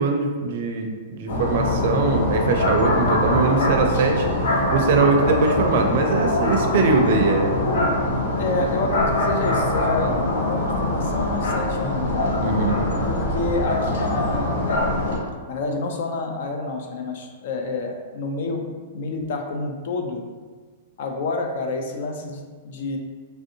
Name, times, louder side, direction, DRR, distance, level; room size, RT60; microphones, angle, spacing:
voice 1, 0.0-7.6 12.4-12.8, right 3 dB, 55° right, 4 dB, 0.4 m, -21 dB
sound 1, 1.3-15.2, left 1 dB, 80° left, 0.8 m, -23 dB
sound 2, 7.7-13.3, right 3 dB, 25° left, 1.0 m, -39 dB
voice 2, 8.4-12.4 13.0-14.9 15.5-18.6 18.9-20.3 21.0-23.0, left 3 dB, 60° left, 3 dB, 0.4 m, -28 dB
3.2 x 2.6 x 2.6 m, 1.5 s
hypercardioid pair, 155°, 0 cm